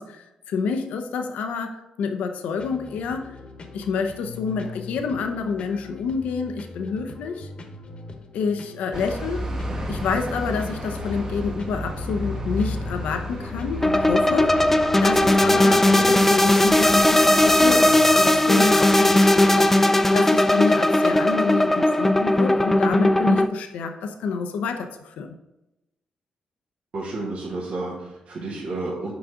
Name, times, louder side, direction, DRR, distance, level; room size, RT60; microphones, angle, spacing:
voice 1, 0.0-3.4 3.7-7.5 8.3-9.5 9.9-14.6 15.0-25.4, left 5 dB, 85° left, 6 dB, 0.6 m, -28 dB
sound 1, 2.6-19.8, left 3 dB, 50° left, 1.0 m, -42 dB
sound 2, 8.9-17.9, left 1 dB, 30° right, 1.1 m, -33 dB
sound 3, 13.8-23.5, left 1 dB, 10° left, 0.4 m, -18 dB
voice 2, 26.9-29.1, right 2 dB, 70° right, -4 dB, 1.6 m, -31 dB
6.1 x 4.9 x 3.7 m, 0.94 s
cardioid pair, 75°, 2 cm